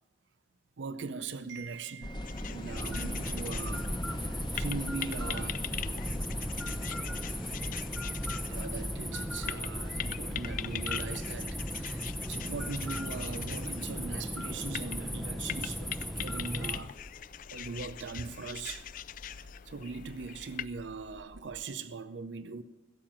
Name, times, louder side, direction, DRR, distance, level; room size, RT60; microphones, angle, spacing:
voice 1, 0.8-5.6 6.4-6.5 8.5-17.0 17.5-18.9 19.3-22.6, right 4 dB, 85° right, 0.6 m, -40 dB
sound 1, 2.0-21.6, left 1 dB, 25° left, 0.9 m, -43 dB
sound 2, 2.2-20.7, left 11 dB, 50° left, 0.4 m, -43 dB
sound 3, 2.7-16.8, equal, ahead, 0.6 m, -37 dB
16.0 x 7.4 x 8.8 m
head